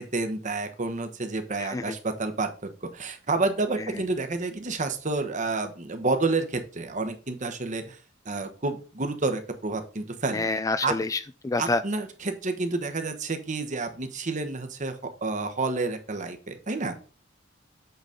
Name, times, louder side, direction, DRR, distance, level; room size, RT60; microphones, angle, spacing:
voice 1, 0.1-8.0 8.2-10.4 10.8-10.9 11.6-17.0, right 3 dB, 40° right, 8 dB, 1.1 m, -29 dB
voice 2, 1.6-2.0 10.3-11.8, left 3 dB, 15° left, 12 dB, 0.3 m, -27 dB
8.1 x 4.0 x 5.1 m, 0.36 s
head